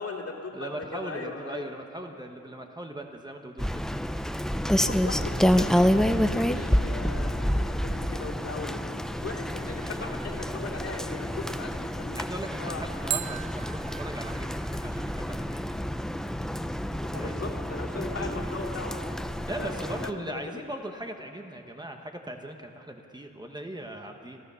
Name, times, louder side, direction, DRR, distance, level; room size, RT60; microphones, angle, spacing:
voice 1, 0.0-1.7 4.6-12.2 12.5-12.8 17.0-20.4, left 3 dB, 55° left, -1 dB, 2.8 m, -38 dB
voice 2, 0.5-3.8 9.8-10.0 12.1-15.8 17.2-17.5 19.5-24.4, right 1 dB, 15° right, 3 dB, 1.1 m, -39 dB
Rain, 3.6-20.1, equal, ahead, 0.5 m, -28 dB
sound 1, 13.1-16.0, right 12 dB, 70° right, 0.5 m, -39 dB
27.5 x 15.0 x 6.9 m, 2.8 s
wide cardioid pair, 150°, 30 cm